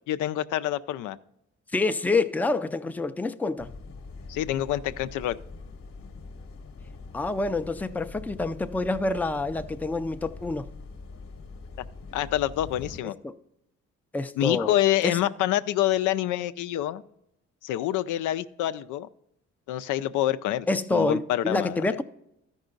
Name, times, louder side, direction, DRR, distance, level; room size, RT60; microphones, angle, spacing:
voice 1, 0.1-1.2 4.3-5.4 12.1-13.1 14.4-17.0 17.6-19.1 19.7-22.0, left 13 dB, 85° left, 0.5 m, -27 dB
voice 2, 1.7-3.7 7.1-10.7 13.2-13.3 14.1-14.8 15.0-15.2 20.7-22.0, left 3 dB, 5° left, 0.4 m, -27 dB
sound 1, 3.6-13.0, left 3 dB, 45° left, 0.9 m, -43 dB
13.0 x 5.4 x 3.9 m
cardioid pair, 90°, 30 cm